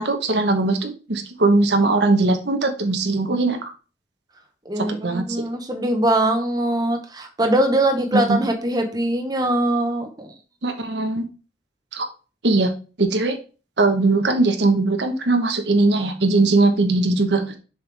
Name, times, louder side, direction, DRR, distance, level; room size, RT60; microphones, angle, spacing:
voice 1, 0.0-3.7 4.8-5.4 8.1-8.4 10.6-11.2 11.9-12.1 12.4-12.7 13.0-13.4 13.8-17.6, right 2 dB, 65° right, 5 dB, 1.2 m, -20 dB
voice 2, 4.6-10.3, right 1 dB, 20° right, 4 dB, 1.1 m, -22 dB
6.9 x 5.6 x 3.4 m, 0.34 s
head